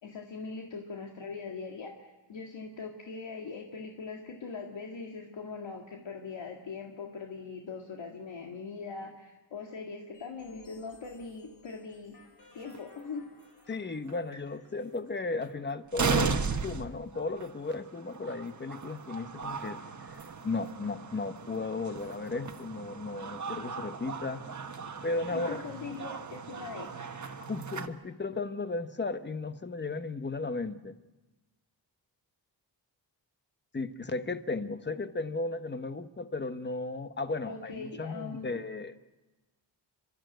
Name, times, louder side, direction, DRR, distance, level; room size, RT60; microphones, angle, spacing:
voice 1, 0.0-12.2 12.5-13.3 25.3-27.0 37.4-38.6, left 4 dB, 80° left, 1 dB, 2.1 m, -41 dB
sound 1, 10.1-15.1, left 3 dB, 60° left, 4.0 m, -58 dB
sound 2, 12.6-12.8 13.7-13.8 14.1-14.2 15.4-15.5 15.9-27.9, right 5 dB, 40° right, 1.4 m, -36 dB
voice 2, 13.7-16.4 16.6-19.8 20.1-24.4 25.0-26.0 27.4-31.0 33.7-39.0, left 3 dB, 25° left, 10 dB, 1.1 m, -35 dB
30.0 x 13.0 x 9.2 m, 1.1 s
wide cardioid pair, 110°, 44 cm